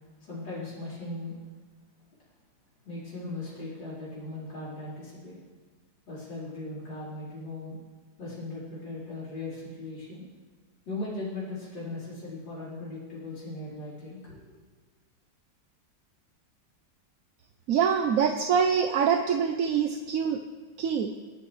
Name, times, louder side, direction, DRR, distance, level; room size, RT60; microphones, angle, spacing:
voice 1, 0.2-1.4 2.9-5.3 6.1-7.8 8.2-10.3 10.9-14.4, left 2 dB, 85° left, -7 dB, 5.2 m, -38 dB
voice 2, 17.7-20.4 20.8-21.1, right 7 dB, 60° right, 5 dB, 1.0 m, -25 dB
28.5 x 11.0 x 3.3 m, 1.4 s
omnidirectional pair, 2.0 m